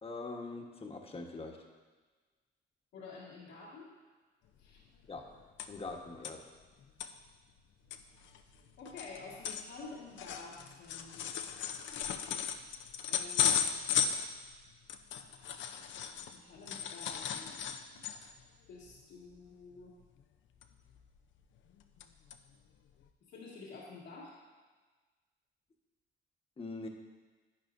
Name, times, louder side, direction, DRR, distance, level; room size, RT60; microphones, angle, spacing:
voice 1, 0.0-1.6 5.1-5.3 5.7-6.4 26.6-26.9, left 3 dB, 30° left, 2 dB, 1.2 m, -43 dB
voice 2, 2.9-3.9 4.6-4.8 8.8-11.4 13.1-13.7 16.0-18.0 18.7-20.0 23.3-24.4, left 4 dB, 85° left, -9 dB, 1.9 m, -50 dB
sound 1, 4.6-4.7 5.0-5.9 6.2-6.3 6.8-7.1 7.6-7.7 7.9-16.4 16.7-18.4 18.8-19.0 19.3-19.5 20.6-21.2 21.6-22.0 22.3-22.4 23.0-23.1, left 7 dB, 70° left, 0.6 m, -36 dB
11.5 x 8.8 x 2.6 m, 1.4 s
cardioid pair, 90°, 20 cm